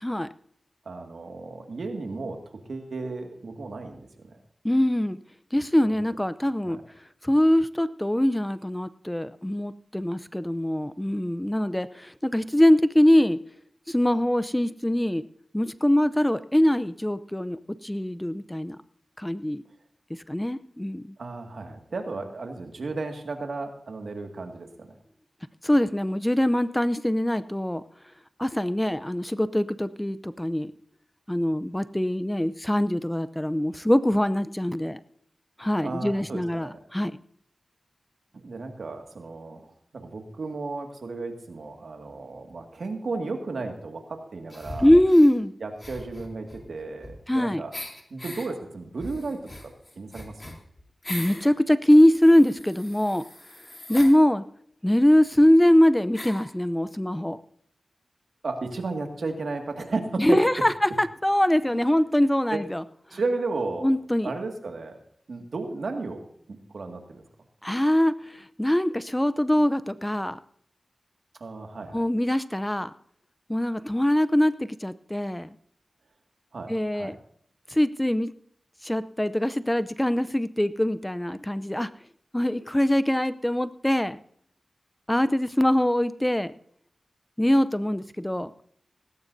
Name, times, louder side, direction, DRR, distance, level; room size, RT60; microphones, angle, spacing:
voice 1, 0.9-2.4 2.7-4.4 6.6-6.8 21.2-24.9 35.8-36.8 38.3-39.7 39.9-44.9 45.6-47.7 48.1-49.4 50.0-50.5 58.4-60.4 61.7-62.0 62.5-62.6 63.1-63.9 64.2-65.0 65.3-66.2 66.7-67.2 71.4-72.0 76.5-77.1, right 3 dB, 80° right, 4 dB, 2.0 m, -34 dB
voice 2, 4.6-5.2 5.5-6.8 7.2-13.4 13.9-15.2 15.5-18.8 19.2-19.6 20.3-21.1 25.6-27.8 28.4-30.7 31.3-35.0 35.6-37.2 44.8-45.5 47.3-47.6 51.1-53.3 53.9-54.4 54.8-57.4 60.2-62.8 63.8-64.3 67.6-70.4 71.9-72.9 73.5-75.5 76.7-77.2 77.7-78.3 78.8-81.9 82.3-84.2 85.1-86.5 87.4-88.5, left 1 dB, 10° left, 14 dB, 0.6 m, -23 dB
sound 1, 44.5-45.3 45.8-47.4 47.7-48.5 49.0-51.5 51.9-54.1 55.0-55.1 55.3-55.4 56.1-56.5, left 1 dB, 30° left, 3.3 m, -40 dB
18.0 x 16.5 x 2.7 m, 0.64 s
cardioid pair, 50°, 0 cm